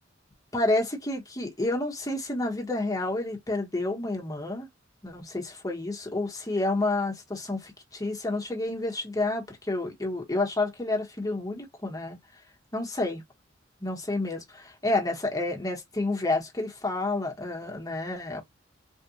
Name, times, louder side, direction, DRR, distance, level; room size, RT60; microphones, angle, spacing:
voice 1, 0.5-4.7 5.0-12.2 12.7-13.2 13.8-18.4, left 2 dB, 20° left, 1.2 m, -29 dB
3.5 x 2.5 x 2.8 m
head